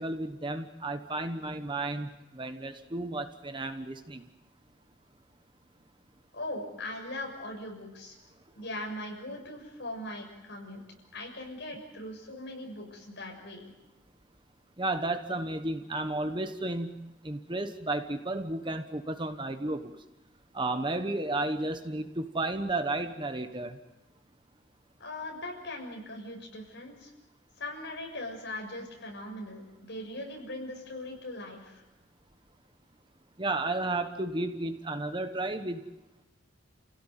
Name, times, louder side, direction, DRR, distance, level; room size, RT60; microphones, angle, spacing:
voice 1, 0.0-4.3 14.8-19.9 20.5-23.8 33.4-35.8, right 2 dB, 25° right, 8 dB, 1.2 m, -33 dB
voice 2, 6.3-8.2 8.6-10.8 11.1-13.7 25.0-27.1 27.6-31.8, left 1 dB, 60° left, 1 dB, 6.9 m, -40 dB
29.5 x 17.0 x 9.2 m, 1.0 s
head